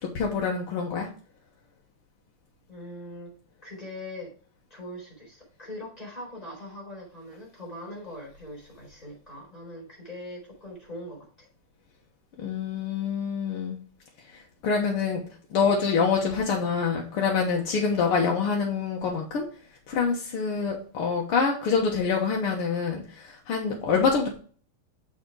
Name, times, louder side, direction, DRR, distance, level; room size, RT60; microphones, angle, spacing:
voice 1, 0.0-1.1 12.4-13.8 14.3-15.2 15.5-19.5 19.9-24.3, left 5 dB, 85° left, -1 dB, 2.1 m, -26 dB
voice 2, 2.7-3.3 3.6-4.3 4.7-11.5, left 1 dB, 15° left, -3 dB, 4.3 m, -41 dB
7.1 x 5.1 x 4.7 m, 0.41 s
omnidirectional pair, 2.4 m